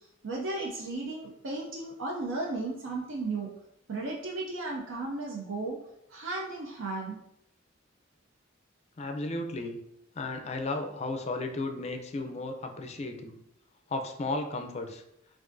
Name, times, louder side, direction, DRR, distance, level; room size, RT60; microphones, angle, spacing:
voice 1, 0.2-3.5 3.9-5.8 6.1-7.2, right 2 dB, 70° right, -1 dB, 0.5 m, -34 dB
voice 2, 9.0-9.8 10.2-13.4 13.9-15.0, left 2 dB, 35° left, 4 dB, 0.4 m, -34 dB
5.9 x 2.5 x 2.6 m, 0.79 s
head